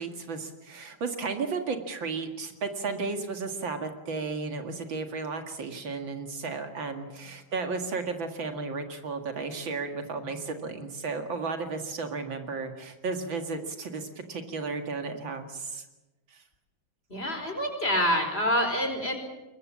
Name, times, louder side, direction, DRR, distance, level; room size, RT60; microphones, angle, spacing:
voice 1, 0.0-15.9 16.3-16.4, right 4 dB, 70° right, 6 dB, 2.7 m, -34 dB
voice 2, 17.1-19.2, equal, 30° left, 5 dB, 4.9 m, -26 dB
22.5 x 22.0 x 7.5 m, 1.1 s
omnidirectional pair, 2.2 m